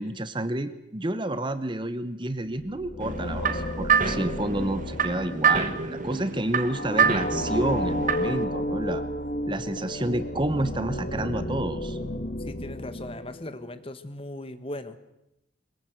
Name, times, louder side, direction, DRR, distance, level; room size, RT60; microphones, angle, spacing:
voice 1, 0.0-9.0 9.5-12.0, right 1 dB, 25° right, 12 dB, 0.9 m, -29 dB
sound 1, 2.5-13.7, left 1 dB, 45° left, 1.5 m, -32 dB
sound 2, 3.0-8.4, right 6 dB, 40° right, 1.4 m, -27 dB
voice 2, 12.5-15.0, left 1 dB, 30° left, 11 dB, 1.2 m, -38 dB
22.5 x 20.0 x 8.0 m, 0.87 s
head